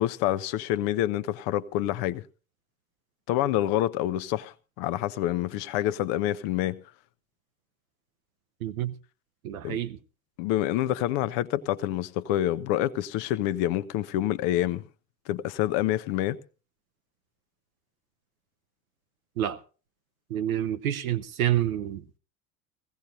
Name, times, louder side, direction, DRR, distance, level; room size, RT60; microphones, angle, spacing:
voice 1, 0.0-2.2 3.3-6.8 9.6-9.8 10.4-14.8 15.3-16.4, left 13 dB, 55° left, 0.8 m, -27 dB
voice 2, 8.6-8.9 9.4-10.0 19.4-19.6 20.3-22.0, right 11 dB, 75° right, 0.8 m, -28 dB
20.5 x 16.0 x 2.7 m
figure-of-eight pair, 60°, 43 cm